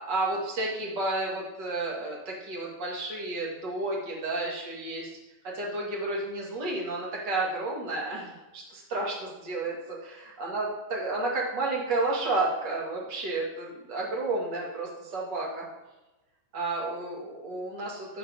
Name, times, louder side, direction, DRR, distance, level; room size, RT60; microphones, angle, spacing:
voice 1, 0.0-5.1 5.4-15.7 16.5-18.2, right 2 dB, 55° right, -3 dB, 1.1 m, -31 dB
14.0 x 4.8 x 4.7 m, 1.1 s
omnidirectional pair, 5.6 m